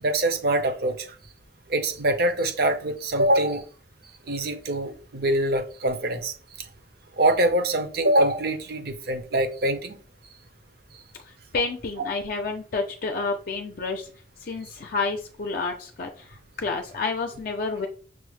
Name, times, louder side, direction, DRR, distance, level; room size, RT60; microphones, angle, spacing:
voice 1, 0.0-1.1 1.7-3.6 4.3-6.7 7.2-10.0, right 1 dB, 60° right, 0.7 m, -24 dB
voice 2, 11.5-14.0 14.5-16.1 16.6-17.9, left 4 dB, 55° left, 0.5 m, -29 dB
6.1 x 2.0 x 3.1 m
head